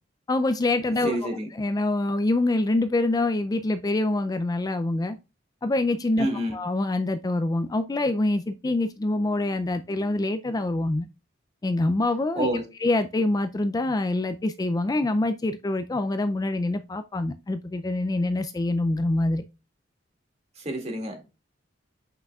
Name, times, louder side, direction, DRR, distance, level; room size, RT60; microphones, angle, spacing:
voice 1, 0.3-5.2 5.6-6.3 6.5-11.1 11.6-12.5 12.8-19.4, left 2 dB, 20° left, 0.3 m, -25 dB
voice 2, 1.0-1.5 6.2-6.6 12.4-12.6 20.6-21.3, equal, 35° right, 2.1 m, -28 dB
7.7 x 5.9 x 2.3 m
head